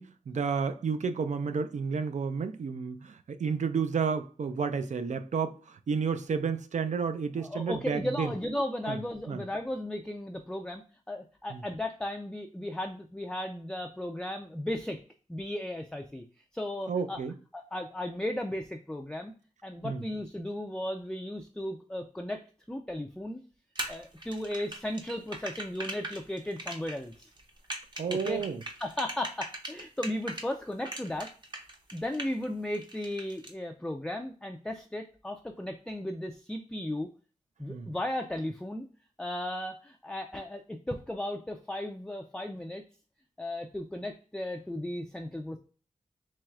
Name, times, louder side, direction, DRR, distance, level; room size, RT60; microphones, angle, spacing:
voice 1, 0.0-8.3 8.9-9.0 9.3-9.4 11.5-11.6 16.9-17.3 19.8-20.0 28.0-28.6 37.7-37.9, right 5 dB, 65° right, 0.5 m, -31 dB
voice 2, 7.4-10.8 11.1-15.0 15.3-16.2 16.5-17.2 17.5-19.3 19.6-23.4 23.9-27.3 28.1-28.4 28.8-31.3 31.9-37.1 37.6-38.9 39.2-42.8 43.4-45.6, left 1 dB, 5° left, 0.4 m, -35 dB
sound 1, 23.8-30.5 30.8-32.4 32.7-33.5, right 1 dB, 35° right, 0.8 m, -39 dB
4.5 x 3.1 x 2.3 m
wide cardioid pair, 95°, 13 cm